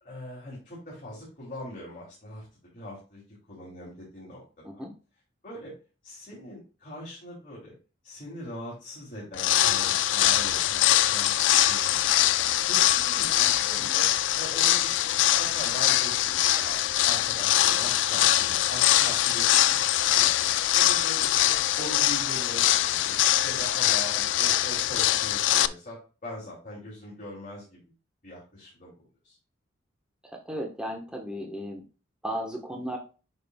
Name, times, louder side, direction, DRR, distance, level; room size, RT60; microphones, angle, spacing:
voice 1, 0.0-4.4 5.4-5.7 6.0-7.7 8.0-12.2 12.6-14.1 14.3-19.8 20.1-20.5 20.7-23.2 23.4-27.9 28.2-29.4, left 1 dB, 45° left, -5 dB, 2.9 m, -41 dB
sound 1, 9.3-25.7, left 13 dB, 85° left, 0.4 m, -23 dB
voice 2, 30.3-31.8 32.2-33.0, equal, 5° right, 0 dB, 1.2 m, -35 dB
9.4 x 5.3 x 2.3 m, 0.34 s
head